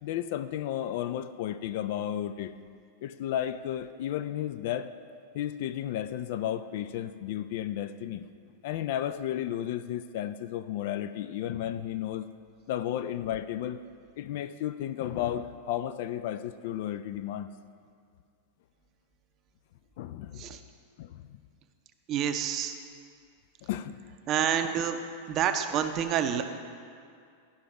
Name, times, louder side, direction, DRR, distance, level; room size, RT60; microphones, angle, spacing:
voice 1, 0.0-2.6 3.0-4.9 5.3-8.3 8.6-12.3 12.7-13.8 14.2-17.5 20.0-20.4 21.0-21.4 23.6-24.0, left 11 dB, 50° left, 12 dB, 0.3 m, -33 dB
voice 2, 22.1-22.7 24.3-25.0 25.3-26.4, right 9 dB, 35° right, 8 dB, 0.6 m, -28 dB
11.5 x 5.7 x 5.1 m, 2.3 s
figure-of-eight pair, 90°, 0 cm